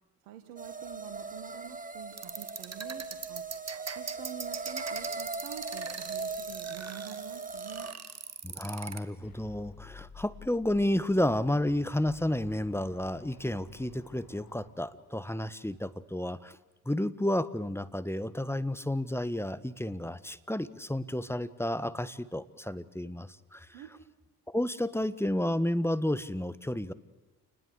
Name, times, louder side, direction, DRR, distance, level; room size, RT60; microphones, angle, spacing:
voice 1, 0.2-3.4 3.9-7.9 23.7-23.9, right 11 dB, 80° right, 6 dB, 1.8 m, -47 dB
sound 1, 0.6-7.9, right 4 dB, 20° right, 1.9 m, -39 dB
sound 2, 2.1-9.0, right 5 dB, 35° right, 2.5 m, -40 dB
voice 2, 8.4-16.6 16.8-23.7 24.5-26.9, left 1 dB, 5° left, 15 dB, 1.5 m, -31 dB
sound 3, 9.2-15.4, left 7 dB, 55° left, 2.3 m, -52 dB
29.0 x 20.0 x 8.2 m, 1.2 s
hypercardioid pair, 45°, 43 cm